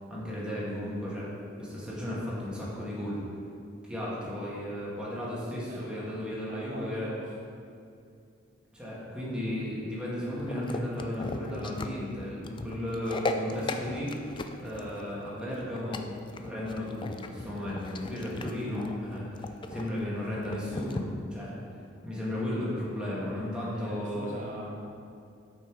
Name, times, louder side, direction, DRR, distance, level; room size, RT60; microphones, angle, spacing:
voice 1, 0.1-1.3 1.6-3.2 3.8-7.1 8.7-14.1 14.6-16.1 16.4-21.6 22.0-24.3, left 1 dB, 5° right, -7 dB, 1.9 m, -34 dB
voice 2, 5.7-7.4 15.0-15.5 23.7-24.9, right 1 dB, 40° right, -3 dB, 0.7 m, -42 dB
sound 1, 10.4-21.0, left 2 dB, 25° left, 0.3 m, -38 dB
7.4 x 5.9 x 4.7 m, 2.5 s
head